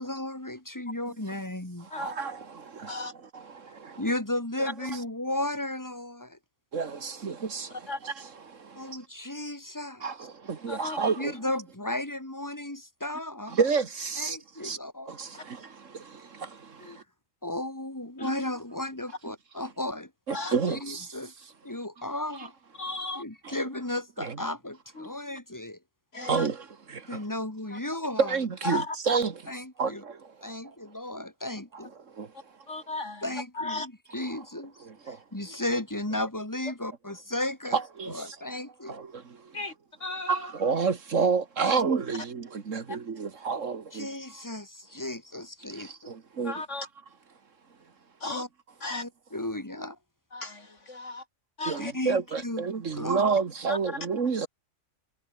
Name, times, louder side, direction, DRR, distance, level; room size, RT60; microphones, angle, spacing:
voice 1, 0.0-1.9 4.0-6.4 8.7-10.1 11.2-13.6 14.2-15.2 16.8-17.0 17.4-20.1 20.7-21.3 21.6-22.5 23.1-25.8 27.1-28.4 29.5-30.0 30.4-31.9 33.2-34.8 35.0-37.8 38.0-39.0 41.6-41.8 43.9-45.9 48.2-48.5 48.9-50.0 51.8-52.7 52.9-53.3, left 1 dB, 15° left, 3.0 m, -34 dB
voice 2, 1.9-4.0 4.6-4.7 6.7-9.0 10.0-11.4 13.5-14.8 15.1-17.0 18.2-18.3 20.3-21.1 22.4-22.5 23.4-23.6 24.2-24.4 26.2-27.2 28.2-30.5 32.1-32.3 34.3-34.4 34.8-35.2 37.7-38.4 38.9-39.6 40.3-44.1 45.7-46.6 51.7-54.5, right 5 dB, 60° right, 1.9 m, -30 dB
voice 3, 10.7-11.0 18.2-18.3 20.3-20.5 22.8-23.2 25.0-25.1 26.1-26.5 27.7-27.8 28.6-29.0 32.7-33.2 33.6-33.9 39.5-39.7 40.0-40.4 42.9-43.0 46.4-46.9 48.2-48.4 48.8-49.0 50.3-51.2 51.6-51.9 53.7-53.8, left 2 dB, 55° left, 4.1 m, -35 dB
omnidirectional pair, 1.5 m